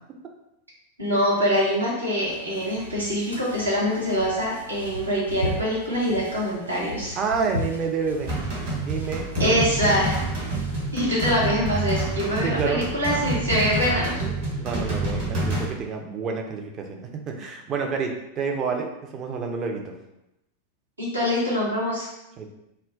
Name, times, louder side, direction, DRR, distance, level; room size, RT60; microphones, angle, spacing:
voice 1, 1.0-7.2 9.4-10.2 10.9-14.3 21.0-22.1, equal, 80° right, -6 dB, 0.9 m, -24 dB
sound 1, 2.2-11.0, left 2 dB, 90° left, 0.5 m, -36 dB
voice 2, 7.2-8.3 8.9-9.6 12.4-12.8 14.6-19.9 22.4-22.5, right 5 dB, 30° right, 3 dB, 0.4 m, -29 dB
sound 2, 8.3-15.7, right 2 dB, 50° right, 1.2 m, -28 dB
2.2 x 2.1 x 3.5 m, 0.90 s
figure-of-eight pair, 90°, 0 cm